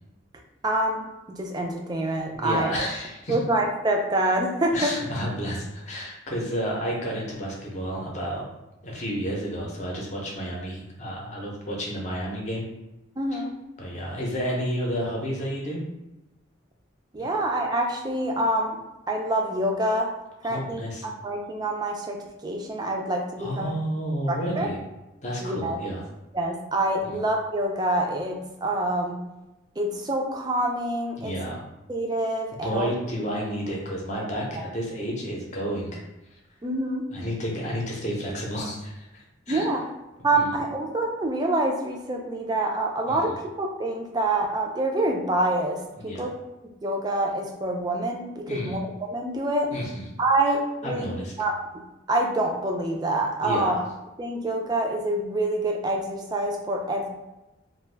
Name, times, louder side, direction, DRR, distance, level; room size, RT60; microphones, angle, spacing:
voice 1, 0.6-2.7 3.3-4.9 13.2-13.5 17.1-18.8 19.1-20.1 20.4-20.8 21.2-23.7 24.3-24.7 25.4-25.8 26.3-29.2 29.8-31.3 31.9-32.9 34.6-34.7 36.6-37.1 39.5-39.8 40.2-46.3 46.8-48.8 49.1-49.7 50.2-51.1 51.4-51.5 52.1-53.8 54.2-57.1, right 1 dB, 20° right, 1 dB, 0.3 m, -26 dB
voice 2, 2.3-3.4 4.7-8.4 8.8-12.7 13.3-13.4 13.8-15.8 17.2-17.3 20.4-21.1 23.4-24.8 25.2-26.0 27.0-27.2 31.2-31.6 32.6-36.0 37.1-39.7 40.3-40.5 43.1-43.3 46.0-46.3 48.5-48.8 49.7-50.1 50.8-51.3 53.4-53.8, equal, 35° left, -2 dB, 0.6 m, -31 dB
2.5 x 2.2 x 3.3 m, 1.0 s
head